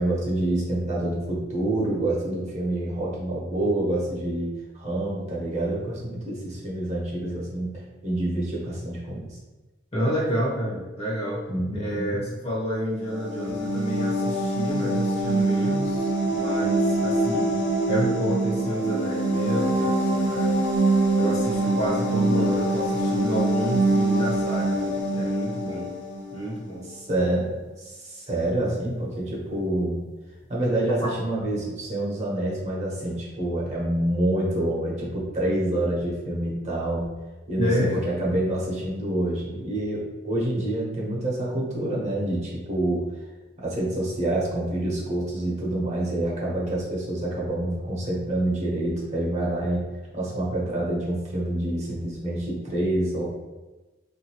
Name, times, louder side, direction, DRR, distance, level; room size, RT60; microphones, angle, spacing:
voice 1, 0.0-9.4 11.5-12.2 26.9-30.0 30.5-37.1 37.5-43.0 43.6-49.8 50.1-53.2, right 1 dB, 35° right, -4 dB, 1.0 m, -27 dB
voice 2, 9.9-17.5 17.9-20.6 21.1-25.9 26.3-26.9 31.0-31.1 37.6-38.0, equal, 35° left, -5 dB, 0.9 m, -29 dB
sound 1, 13.0-26.6, right 2 dB, 70° left, 0.9 m, -24 dB
3.8 x 2.7 x 2.9 m, 1.2 s
head